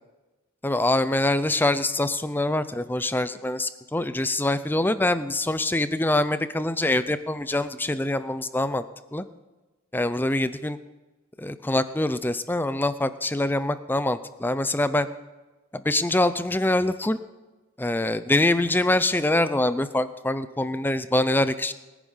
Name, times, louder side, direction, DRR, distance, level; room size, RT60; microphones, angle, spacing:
voice 1, 0.6-8.8 9.1-9.2 9.9-10.8 11.4-15.1 15.7-17.2 17.8-21.7, left 1 dB, 10° left, 13 dB, 0.5 m, -24 dB
20.5 x 10.0 x 5.6 m, 1.2 s
head